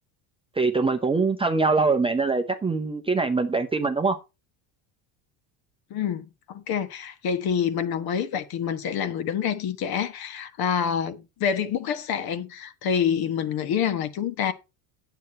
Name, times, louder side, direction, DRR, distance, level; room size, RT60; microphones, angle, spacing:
voice 1, 0.6-4.2, right 3 dB, 10° right, 0.6 m, -23 dB
voice 2, 5.9-14.5, left 8 dB, 50° left, 1.3 m, -27 dB
9.4 x 8.0 x 4.3 m
cardioid pair, 145°, 48 cm